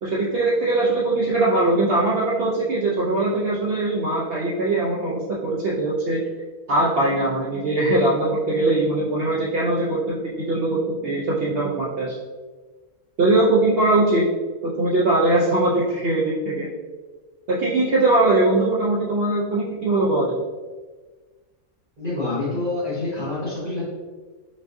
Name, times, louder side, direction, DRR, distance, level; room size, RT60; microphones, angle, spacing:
voice 1, 0.0-6.2 6.7-12.1 13.2-14.3 14.6-16.7 17.5-20.4, right 2 dB, 70° right, -5 dB, 0.5 m, -21 dB
voice 2, 22.0-23.9, left 2 dB, 40° right, -10 dB, 1.0 m, -27 dB
5.1 x 2.5 x 2.6 m, 1.3 s
omnidirectional pair, 1.5 m